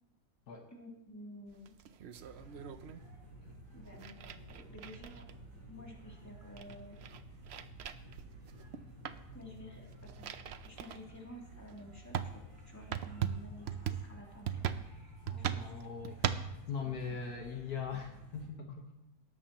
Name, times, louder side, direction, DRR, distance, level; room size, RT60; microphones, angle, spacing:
voice 1, 0.7-1.8 3.7-5.3 5.7-7.0 9.3-10.3 10.6-15.2 15.5-15.7 16.8-17.2, left 1 dB, 10° left, -2 dB, 2.8 m, -52 dB
sound 1, 1.5-3.0 3.9-5.5 6.0-6.1 6.3-8.8 9.1-9.3 9.8-11.0 11.6-11.7 12.1-16.6, right 9 dB, 60° right, 0.7 m, -39 dB
sound 2, 2.1-18.5, right 1 dB, 80° right, 4.7 m, -53 dB
voice 2, 15.2-19.1, left 6 dB, 70° left, 2 dB, 1.8 m, -41 dB
17.0 x 13.5 x 3.0 m, 0.86 s
omnidirectional pair, 1.7 m